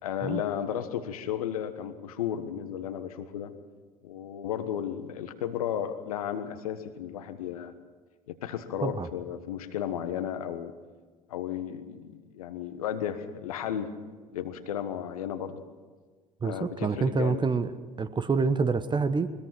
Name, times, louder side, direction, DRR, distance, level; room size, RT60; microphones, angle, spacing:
voice 1, 0.0-3.5 4.0-7.7 8.3-10.7 11.3-13.9 14.3-15.6 16.4-17.4, left 9 dB, 70° left, 10 dB, 1.4 m, -34 dB
voice 2, 16.4-17.7 18.0-19.3, right 4 dB, 25° right, 12 dB, 1.2 m, -27 dB
21.0 x 21.0 x 6.1 m, 1.4 s
figure-of-eight pair, 55°, 19 cm